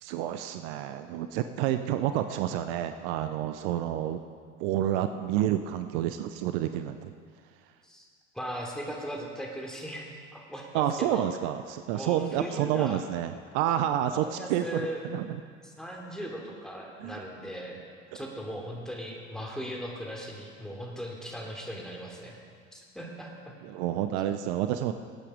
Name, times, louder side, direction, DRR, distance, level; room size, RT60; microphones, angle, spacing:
voice 1, 0.0-4.2 4.6-7.1 10.7-15.4 17.0-17.2 23.6-24.9, right 11 dB, 65° right, 9 dB, 0.8 m, -29 dB
voice 2, 8.3-11.2 11.9-13.0 14.1-15.0 15.6-17.8 18.1-22.4 22.7-23.6, equal, ahead, -1 dB, 3.1 m, -38 dB
19.0 x 8.5 x 5.1 m, 2.1 s
hypercardioid pair, 75°, 37 cm